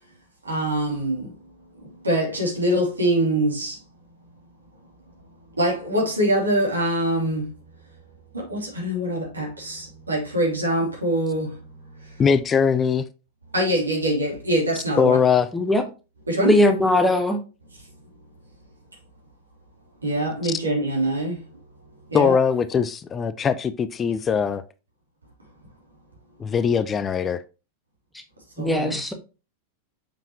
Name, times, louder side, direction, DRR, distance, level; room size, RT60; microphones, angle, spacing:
voice 1, 0.4-3.8 5.5-7.5 8.3-12.2 13.5-15.2 16.3-16.5 20.0-21.5 22.1-22.3 28.6-29.0, right 1 dB, 80° right, 2.9 m, -24 dB
voice 2, 12.2-13.0 15.0-15.5 22.1-24.6 26.4-27.4, left 6 dB, 20° left, 0.5 m, -21 dB
voice 3, 16.4-17.4 28.6-29.1, left 1 dB, 5° left, 1.3 m, -19 dB
6.8 x 5.7 x 2.9 m
figure-of-eight pair, 90°, 0 cm